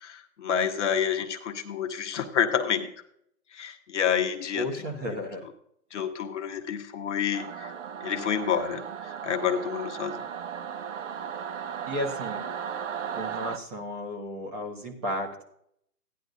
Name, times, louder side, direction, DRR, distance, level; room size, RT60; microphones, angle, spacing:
voice 1, 0.0-2.9 3.5-4.7 5.9-7.7 8.0-10.2, left 8 dB, 45° left, 3 dB, 1.1 m, -28 dB
voice 2, 4.5-5.5 11.8-12.4 13.1-15.4, equal, 25° right, 2 dB, 1.5 m, -33 dB
Singing / Musical instrument, 7.3-13.6, right 8 dB, 50° right, 0.6 m, -36 dB
16.0 x 10.5 x 2.7 m, 0.71 s
hypercardioid pair, 155°, 49 cm